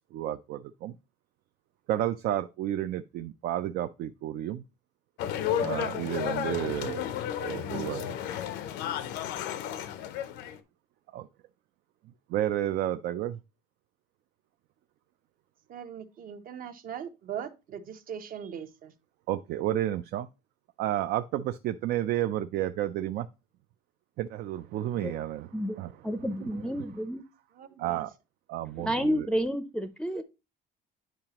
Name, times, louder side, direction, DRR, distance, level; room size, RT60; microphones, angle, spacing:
voice 1, 0.1-1.0 1.9-4.6 5.6-7.0 7.4-8.4 11.1-11.3 12.3-13.4 19.3-20.3 20.8-23.3 24.2-25.9 26.4-26.5 27.8-28.1 28.5-29.3, right 12 dB, 75° right, 0.4 m, -31 dB
sound 1, 5.2-10.6, left 10 dB, 90° left, 0.7 m, -32 dB
voice 2, 15.7-18.9 27.6-28.0, right 8 dB, 55° right, 0.9 m, -40 dB
voice 3, 26.0-27.2 28.8-30.2, equal, 5° left, 0.5 m, -30 dB
9.2 x 4.9 x 2.9 m
cardioid pair, 110°, 17 cm